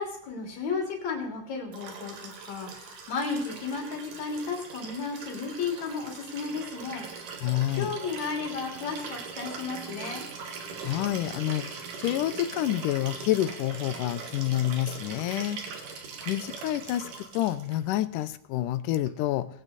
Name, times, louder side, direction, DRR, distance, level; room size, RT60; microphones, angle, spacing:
voice 1, 0.0-7.1 7.8-10.2, left 4 dB, 60° left, 1 dB, 4.0 m, -33 dB
Liquid, 1.7-17.8 19.1-19.2, right 5 dB, 80° right, 3.3 m, -41 dB
voice 2, 7.4-7.9 10.8-15.6 16.3-19.5, left 13 dB, 85° left, 15 dB, 2.2 m, -28 dB
20.0 x 8.9 x 4.1 m, 0.76 s
omnidirectional pair, 3.7 m